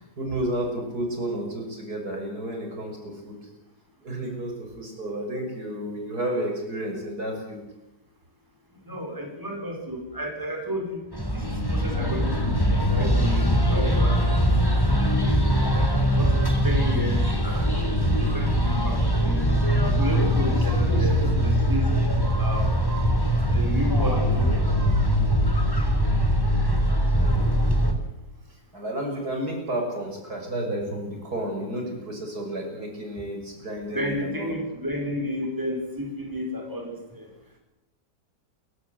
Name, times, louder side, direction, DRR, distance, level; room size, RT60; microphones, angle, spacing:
voice 1, 0.2-3.4 4.0-7.6 15.6-15.7 20.9-21.3 27.2-27.6 28.7-34.5, right 1 dB, 60° right, 2 dB, 6.6 m, -31 dB
voice 2, 8.8-11.0 11.3-12.5 12.9-14.4 15.7-15.9 16.2-17.7 18.2-19.6 20.0-21.9 22.4-22.7 23.5-24.8 33.9-37.2, equal, 10° right, 1 dB, 5.2 m, -32 dB
sound 1, 11.1-27.9, equal, 10° left, 3.4 m, -22 dB
29.0 x 16.0 x 7.9 m, 0.95 s
omnidirectional pair, 1.9 m